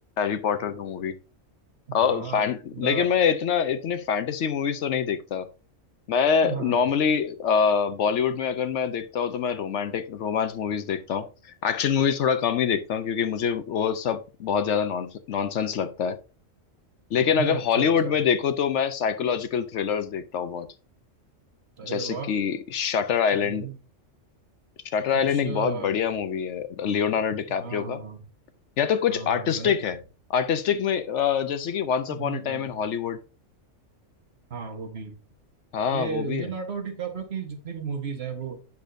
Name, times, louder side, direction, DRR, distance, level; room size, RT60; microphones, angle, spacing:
voice 1, 0.2-1.1 1.9-5.5 6.1-16.2 17.1-20.7 21.9-23.7 24.8-28.0 28.8-30.0 30.3-33.2 35.7-36.5, left 7 dB, 70° left, 0.9 m, -25 dB
voice 2, 1.9-2.5 2.7-3.1 6.4-6.9 17.2-18.2 21.8-22.3 23.3-23.8 25.3-25.9 27.5-28.2 29.1-29.8 32.1-32.7 34.5-35.1 35.9-38.6, right 6 dB, 55° right, 1.4 m, -34 dB
8.4 x 6.8 x 2.6 m
omnidirectional pair, 1.3 m